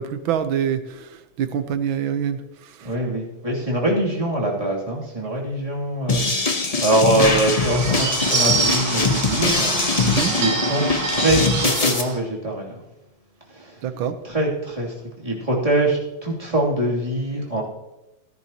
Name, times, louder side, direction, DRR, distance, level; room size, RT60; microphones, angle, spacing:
voice 1, 0.0-2.4 2.8-2.9 10.0-10.3 13.8-14.1, right 8 dB, 80° right, 10 dB, 1.7 m, -25 dB
voice 2, 2.8-12.8 13.5-13.8 14.2-17.6, right 1 dB, 15° right, -3 dB, 2.9 m, -24 dB
sound 1, 6.1-12.0, left 3 dB, 35° left, 0.6 m, -22 dB
Bird / Bell, 7.2-12.2, right 4 dB, 55° right, 1.7 m, -26 dB
17.5 x 10.5 x 2.9 m, 0.97 s
omnidirectional pair, 2.2 m